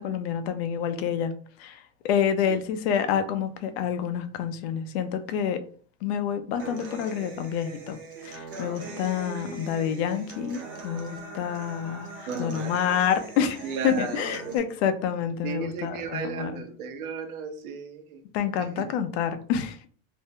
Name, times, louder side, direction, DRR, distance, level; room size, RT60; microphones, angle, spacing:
voice 1, 0.0-1.3 1.6-5.6 6.0-16.6 18.3-19.9, left 8 dB, 50° left, 8 dB, 0.4 m, -28 dB
Human voice / Acoustic guitar, 6.6-14.6, right 3 dB, 30° right, 0.6 m, -41 dB
voice 2, 12.3-12.7 13.6-14.6 15.4-18.2 18.6-18.9, right 5 dB, 90° right, 6 dB, 0.9 m, -35 dB
2.6 x 2.1 x 3.5 m, 0.44 s
supercardioid pair, 160°, 41 cm